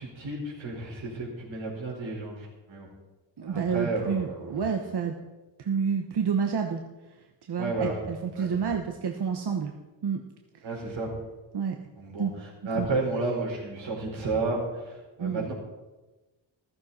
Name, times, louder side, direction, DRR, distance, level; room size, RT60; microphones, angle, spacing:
voice 1, 0.0-2.9 3.5-4.6 7.6-8.0 8.4-8.5 10.6-11.1 12.0-15.5, right 3 dB, 90° right, -3 dB, 5.2 m, -32 dB
voice 2, 3.4-5.2 5.6-9.7 10.0-10.2 10.5-10.7 11.5-11.8 12.2-12.3 12.7-12.9 15.2-15.5, right 6 dB, 60° right, 4 dB, 1.1 m, -29 dB
15.0 x 14.0 x 4.3 m, 1.1 s
wide cardioid pair, 140°, 45 cm